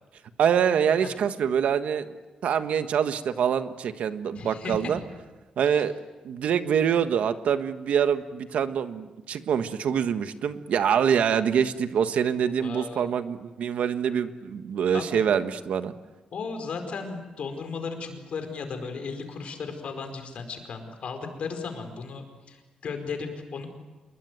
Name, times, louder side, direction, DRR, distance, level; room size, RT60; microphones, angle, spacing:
voice 1, 0.4-2.1 2.4-5.0 5.6-5.9 6.2-15.9, right 8 dB, 80° right, 10 dB, 1.5 m, -25 dB
voice 2, 4.4-5.0 5.7-5.8 12.6-13.1 14.9-15.3 16.3-23.7, left 5 dB, 60° left, 6 dB, 4.9 m, -35 dB
27.5 x 22.0 x 9.4 m, 1.2 s
wide cardioid pair, 155°, 2 cm